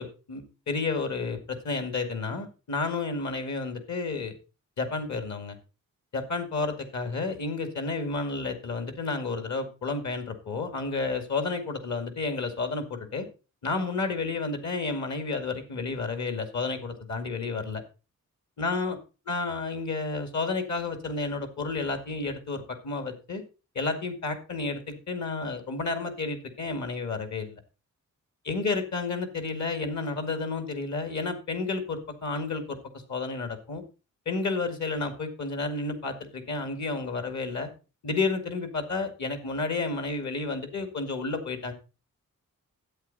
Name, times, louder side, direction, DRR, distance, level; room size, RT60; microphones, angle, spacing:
voice 1, 0.0-4.3 4.8-5.6 6.1-13.3 13.6-17.8 18.6-19.0 19.3-23.4 23.7-27.6 28.5-32.8 33.1-33.8 34.3-37.7 38.0-41.7, left 3 dB, 60° left, 7 dB, 2.3 m, -31 dB
13.0 x 8.5 x 4.1 m, 0.32 s
wide cardioid pair, 130°, 32 cm